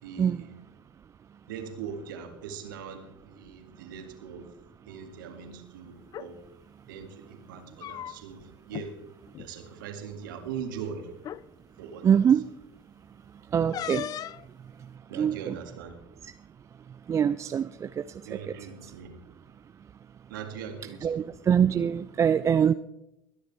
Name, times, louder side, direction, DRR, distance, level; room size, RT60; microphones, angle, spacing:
voice 1, 0.0-0.5 1.4-4.5 4.9-6.4 6.9-9.0 9.4-11.1 11.8-12.2 13.7-13.9 15.1-16.0 18.2-19.2 20.3-21.3, right 7 dB, 70° right, 6 dB, 2.0 m, -41 dB
sound 1, 6.0-6.3 7.5-8.4 8.7-8.9 9.3-9.5 10.5-10.6 11.2-11.4 13.7-14.5, left 11 dB, 35° left, 0.4 m, -37 dB
voice 2, 12.0-12.4 13.5-14.1 15.1-15.5 17.1-18.0 21.0-22.7, right 8 dB, 25° right, 12 dB, 0.4 m, -23 dB
21.5 x 10.0 x 3.5 m, 0.88 s
figure-of-eight pair, 75°, 11 cm